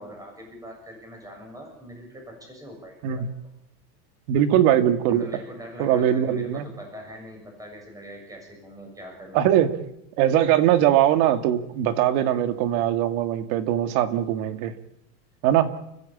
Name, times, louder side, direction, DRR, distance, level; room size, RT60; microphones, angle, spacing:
voice 1, 0.0-3.2 5.1-9.4 10.3-10.5, equal, 5° right, 2 dB, 7.0 m, -42 dB
voice 2, 4.3-5.3 5.8-6.7 9.3-9.7 10.2-14.8 15.4-15.7, right 11 dB, 60° right, 9 dB, 2.4 m, -21 dB
29.5 x 15.5 x 8.7 m, 0.83 s
supercardioid pair, 145°, 49 cm